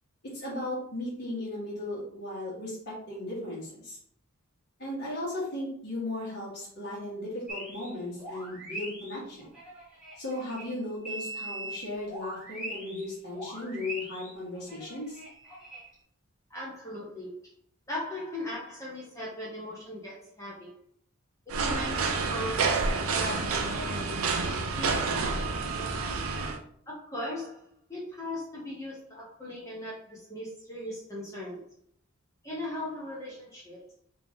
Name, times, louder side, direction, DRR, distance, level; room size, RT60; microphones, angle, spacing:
voice 1, 0.2-4.0 4.8-9.4 10.2-15.2, left 1 dB, 50° left, -7 dB, 1.6 m, -36 dB
sound 1, 7.5-7.9 8.2-13.1 13.3-15.9, right 1 dB, 5° right, 1.1 m, -41 dB
voice 2, 16.5-17.5 17.9-20.7 21.6-22.9 23.1-26.2 26.9-31.6 32.4-33.8, left 1 dB, 15° left, -6 dB, 0.8 m, -39 dB
sound 2, 21.5-26.6, right 4 dB, 70° right, 0.5 m, -29 dB
3.5 x 2.7 x 3.6 m, 0.65 s
head